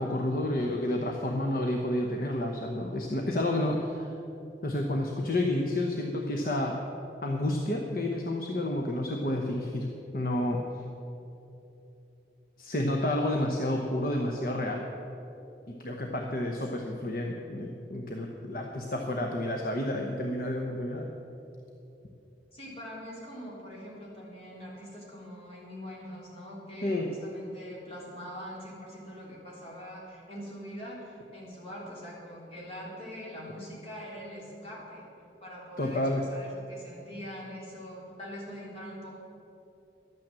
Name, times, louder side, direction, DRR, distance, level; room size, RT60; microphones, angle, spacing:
voice 1, 0.0-4.1 4.6-6.8 7.2-9.9 10.1-10.6 12.6-14.8 15.7-21.1 26.8-27.1 35.8-36.3, left 1 dB, 50° left, 1 dB, 0.9 m, -30 dB
voice 2, 22.5-35.0 35.4-39.2, equal, 35° left, -5 dB, 3.4 m, -43 dB
12.0 x 8.9 x 7.5 m, 2.9 s
head